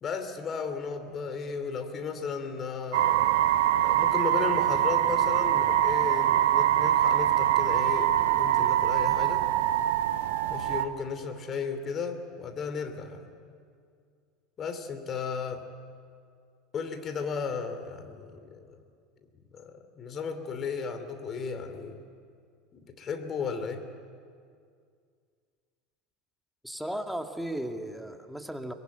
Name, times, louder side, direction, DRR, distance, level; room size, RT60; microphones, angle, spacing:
voice 1, 0.0-3.5 3.7-9.5 10.5-13.3 14.6-15.7 16.7-18.7 19.5-22.0 22.7-23.9, left 5 dB, 40° left, 8 dB, 2.8 m, -35 dB
sound 1, 2.9-10.9, right 11 dB, 70° right, 0.9 m, -24 dB
voice 2, 26.6-28.7, right 1 dB, ahead, 5 dB, 2.2 m, -35 dB
23.5 x 21.5 x 9.2 m, 2.2 s
hypercardioid pair, 80°, 0 cm